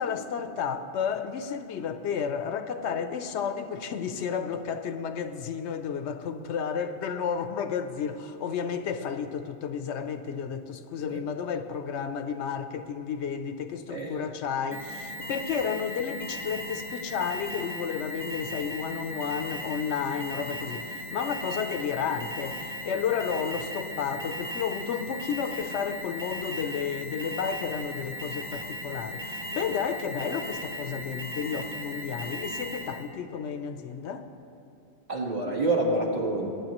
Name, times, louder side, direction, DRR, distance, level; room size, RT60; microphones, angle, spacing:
voice 1, 0.0-34.3, left 7 dB, 80° left, 0.9 m, -32 dB
voice 2, 13.9-14.3 35.1-36.5, right 2 dB, 35° right, 1.6 m, -27 dB
Alarm, 14.7-33.1, left 1 dB, 15° right, 0.8 m, -37 dB
19.5 x 9.2 x 3.0 m
omnidirectional pair, 1.1 m